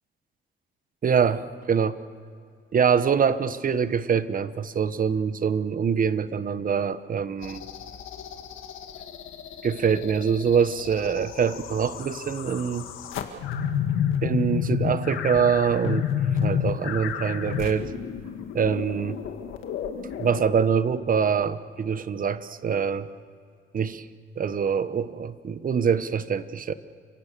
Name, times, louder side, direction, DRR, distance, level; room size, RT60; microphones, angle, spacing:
voice 1, 1.0-2.0 2.7-7.6 9.6-12.9 14.2-16.1 16.4-17.9 18.5-19.2 20.2-23.1 23.7-24.0 24.4-26.7, right 7 dB, 45° right, 14 dB, 1.0 m, -24 dB
sound 1, 7.4-20.5, left 8 dB, 80° left, 1.8 m, -30 dB
29.5 x 16.5 x 6.8 m, 2.3 s
cardioid pair, 90°, 20 cm